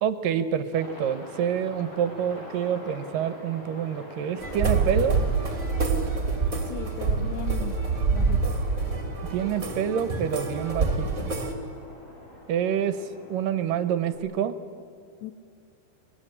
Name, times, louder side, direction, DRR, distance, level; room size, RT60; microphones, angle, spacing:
voice 1, 0.0-5.2 9.3-11.3 12.5-14.6, right 8 dB, 75° right, 12 dB, 2.4 m, -27 dB
Aircraft, 0.7-14.2, left 1 dB, 55° left, 6.4 m, -45 dB
sound 1, 4.4-11.5, right 4 dB, 25° right, 2.1 m, -26 dB
voice 2, 6.6-7.8 8.1-8.5 15.2-15.3, left 10 dB, 85° left, 12 dB, 1.7 m, -37 dB
23.5 x 22.5 x 9.8 m, 2.3 s
omnidirectional pair, 4.4 m